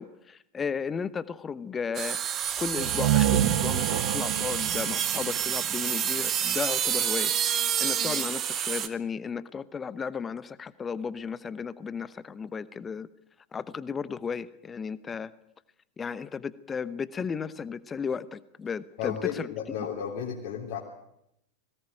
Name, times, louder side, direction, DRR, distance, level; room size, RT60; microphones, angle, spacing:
voice 1, 0.0-7.3 7.8-13.1 13.5-15.3 16.0-19.5, left 6 dB, 20° left, 17 dB, 1.0 m, -34 dB
sound 1, 1.9-8.9, right 9 dB, 30° right, 1.6 m, -29 dB
sound 2, 2.8-6.5, right 12 dB, 50° right, 1.2 m, -28 dB
voice 2, 19.0-20.8, left 8 dB, 45° left, -2 dB, 3.3 m, -33 dB
21.5 x 17.5 x 9.1 m, 0.79 s
figure-of-eight pair, 90°, 0 cm